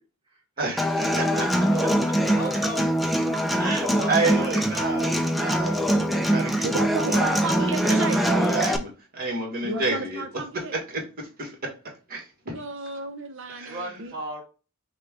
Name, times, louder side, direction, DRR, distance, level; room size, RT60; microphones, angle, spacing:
voice 1, 0.6-1.5 3.6-6.8 7.0-10.2 10.9-11.6 12.1-12.6 13.5-14.0, right 3 dB, 45° right, 1.7 m, -30 dB
Human voice / Acoustic guitar, 0.8-8.8, equal, ahead, 0.3 m, -23 dB
voice 2, 1.2-2.9 3.6-4.6 13.6-14.4, right 2 dB, 25° right, 1.6 m, -36 dB
voice 3, 6.6-8.2 9.6-10.7 12.5-14.1, right 3 dB, 60° right, 0.8 m, -32 dB
5.5 x 2.3 x 3.6 m
head